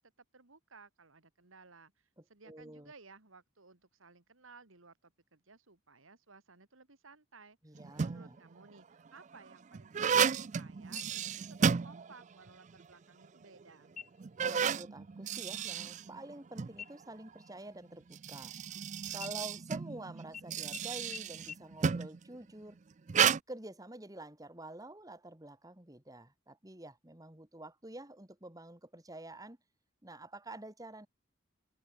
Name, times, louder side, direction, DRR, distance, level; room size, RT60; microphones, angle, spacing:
voice 1, 0.3-7.6 8.0-14.0, right 4 dB, 85° right, 2.5 m, -58 dB
voice 2, 2.2-2.9 7.6-8.4 14.4-18.5 19.1-22.8 23.5-29.6 30.0-31.1, right 1 dB, 20° right, 2.0 m, -48 dB
sound 1, 7.7-8.4 9.1-12.5 12.8-12.9 13.6-13.7 14.2-16.7 17.9-22.2 23.1-23.4, right 7 dB, 35° right, 0.4 m, -32 dB
sound 2, 11.0-11.6 12.0-12.1 12.7-13.2 13.9-14.4 14.8-15.1 15.4-16.5 16.8-18.8 19.2-20.0 20.3-20.4 20.7-20.8 21.1-21.2 21.5-21.6, left 7 dB, 40° left, 4.5 m, -50 dB
head